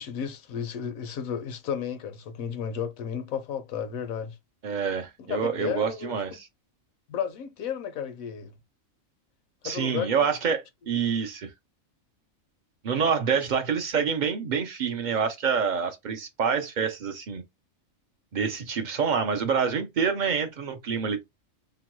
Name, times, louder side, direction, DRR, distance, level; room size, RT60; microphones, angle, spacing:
voice 1, 0.0-4.3 5.2-6.2 7.1-8.5 9.6-10.3, left 8 dB, 90° left, 1.1 m, -33 dB
voice 2, 4.6-6.5 9.6-11.5 12.8-17.4 18.3-21.2, right 6 dB, 70° right, 0.4 m, -27 dB
3.0 x 2.2 x 2.9 m
omnidirectional pair, 1.4 m